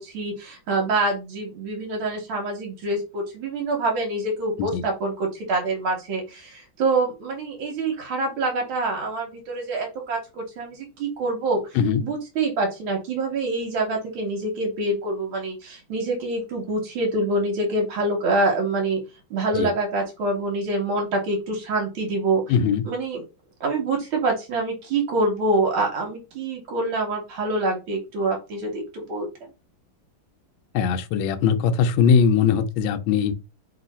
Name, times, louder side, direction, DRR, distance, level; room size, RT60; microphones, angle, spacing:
voice 1, 0.0-19.0 19.3-22.5 22.8-23.2 23.6-29.3, right 2 dB, 80° right, 1.7 m, -26 dB
voice 2, 22.5-22.8 30.7-33.3, left 6 dB, 80° left, 1.3 m, -20 dB
3.1 x 3.0 x 4.1 m
omnidirectional pair, 2.2 m